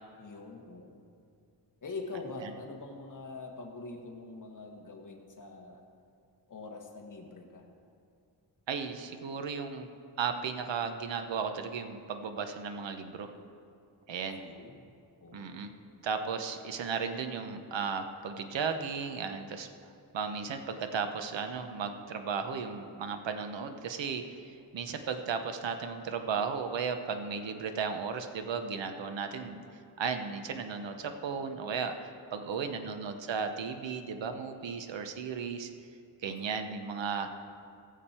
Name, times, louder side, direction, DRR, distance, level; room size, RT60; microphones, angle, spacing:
voice 1, 0.2-1.1 1.8-5.8 6.5-7.6 14.3-14.9 15.2-15.7 32.6-33.0 36.3-36.7, left 3 dB, 45° left, 1 dB, 1.5 m, -44 dB
voice 2, 8.7-9.9 10.2-13.3 14.1-14.4 15.3-15.7 16.0-19.7 20.1-29.6 30.0-35.7 36.2-37.4, right 5 dB, 85° right, 7 dB, 0.9 m, -35 dB
19.0 x 7.3 x 4.4 m, 2.4 s
wide cardioid pair, 170°, 43 cm